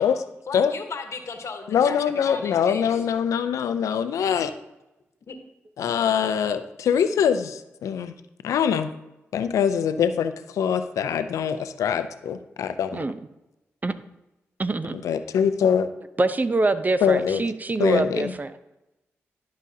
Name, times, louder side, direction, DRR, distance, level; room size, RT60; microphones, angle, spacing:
voice 1, 0.0-3.0 5.3-5.4, left 5 dB, 65° left, 6 dB, 1.1 m, -36 dB
voice 2, 1.7-4.5 5.8-8.1 8.4-8.9 9.3-13.0 15.0-15.9 17.0-17.4 17.8-18.3, left 7 dB, 80° left, 11 dB, 0.5 m, -23 dB
voice 3, 14.6-15.0 16.2-18.5, right 2 dB, 30° right, 12 dB, 0.6 m, -24 dB
11.0 x 5.1 x 2.7 m, 0.94 s
supercardioid pair, 45°, 5 cm